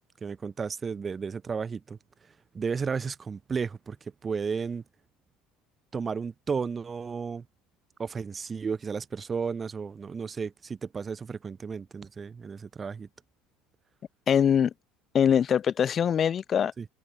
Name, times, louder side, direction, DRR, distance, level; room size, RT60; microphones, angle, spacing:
voice 1, 0.2-2.0 2.5-4.8 5.9-7.4 8.0-13.1 16.8-16.9, right 5 dB, 20° right, 1.1 m, -33 dB
voice 2, 14.3-14.7 15.1-16.7, left 8 dB, 30° left, 0.9 m, -23 dB
cardioid pair, 150°, 0 cm